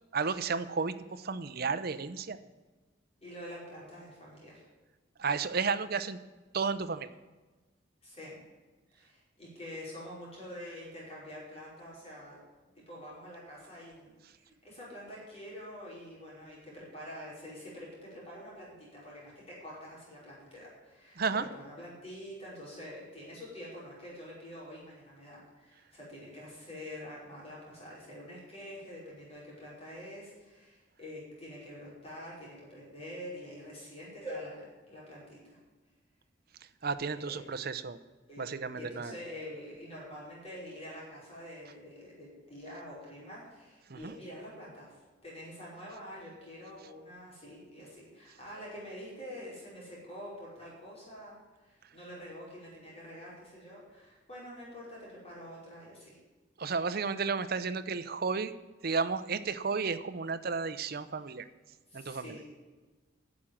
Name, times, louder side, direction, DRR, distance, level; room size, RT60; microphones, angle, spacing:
voice 1, 0.1-2.4 5.2-6.2 6.5-7.1 21.2-21.4 36.8-38.0 38.4-39.1 43.9-44.1 56.6-58.5 58.8-61.5 61.9-62.4, right 5 dB, 55° right, 12 dB, 0.7 m, -32 dB
voice 2, 3.2-4.6 8.0-8.4 8.9-12.4 12.7-35.6 37.1-37.5 38.3-56.2 61.9-62.4, equal, 35° left, -5 dB, 5.1 m, -46 dB
11.5 x 7.3 x 9.1 m, 1.2 s
head